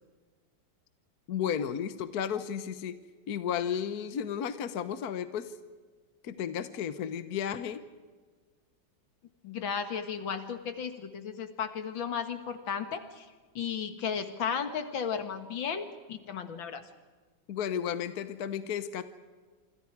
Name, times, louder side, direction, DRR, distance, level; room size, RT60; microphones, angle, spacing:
voice 1, 1.3-3.0 3.3-5.5 6.2-7.8 17.5-19.0, left 8 dB, 55° left, 11 dB, 1.4 m, -33 dB
voice 2, 9.4-13.3 13.6-16.8, left 7 dB, 75° left, 8 dB, 2.4 m, -34 dB
27.0 x 26.0 x 4.7 m, 1.4 s
omnidirectional pair, 2.1 m